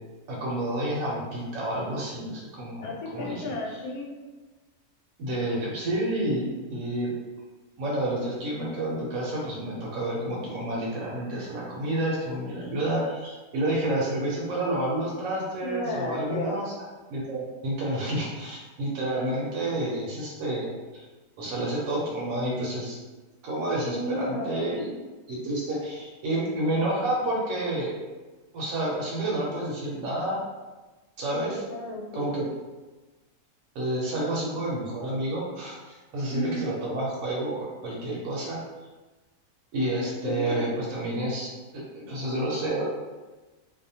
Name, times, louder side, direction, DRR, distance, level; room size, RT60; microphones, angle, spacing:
voice 1, 0.3-3.4 5.2-7.1 7.8-16.7 17.1-21.1 21.4-23.0 23.4-24.9 25.3-27.9 28.5-30.4 31.2-31.6 32.1-32.5 33.7-37.5 37.8-38.6 39.7-42.8, right 1 dB, 70° right, -5 dB, 1.0 m, -29 dB
voice 2, 2.8-4.1 15.6-16.6 23.8-24.8 31.5-32.3 36.3-36.6 40.2-40.7, left 1 dB, 80° left, -2 dB, 1.1 m, -33 dB
2.6 x 2.1 x 2.7 m, 1.2 s
omnidirectional pair, 1.6 m